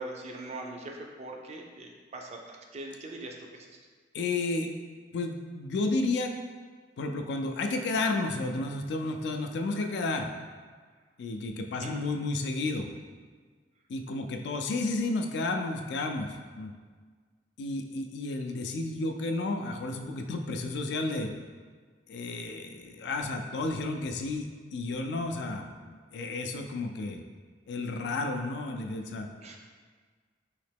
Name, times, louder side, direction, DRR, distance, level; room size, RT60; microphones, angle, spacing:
voice 1, 0.0-3.8 11.7-11.9 29.4-29.6, right 2 dB, 35° right, 1 dB, 0.4 m, -41 dB
voice 2, 4.1-4.7 5.1-6.3 7.0-10.3 11.2-12.9 13.9-16.7 17.6-21.3 22.1-27.2 27.7-29.3, left 2 dB, 65° left, 4 dB, 0.3 m, -32 dB
3.1 x 2.8 x 3.4 m, 1.5 s
head